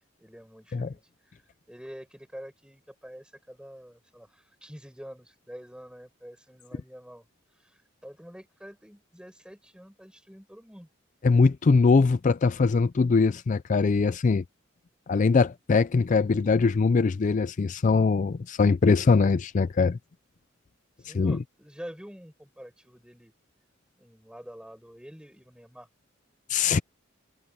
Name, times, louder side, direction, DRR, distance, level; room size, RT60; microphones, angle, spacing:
voice 1, 0.2-1.4 1.7-7.3 7.6-10.9 21.0-23.3 24.0-25.9, equal, 5° right, 5.2 m, -47 dB
voice 2, 11.2-14.4 15.1-20.0 21.0-21.4 26.5-26.8, left 4 dB, 40° left, 0.4 m, -22 dB
head